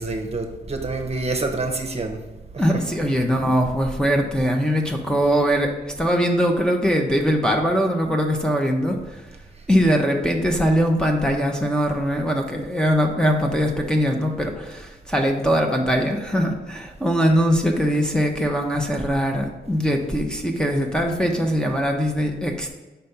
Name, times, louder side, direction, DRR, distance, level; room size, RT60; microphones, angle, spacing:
voice 1, 0.0-2.2 2.5-2.8, right 3 dB, 40° right, 3 dB, 0.9 m, -27 dB
voice 2, 2.6-5.7 6.0-9.2 9.7-22.7, equal, 5° left, 0 dB, 0.8 m, -21 dB
5.6 x 3.3 x 5.5 m, 1.1 s
cardioid pair, 75°, 17 cm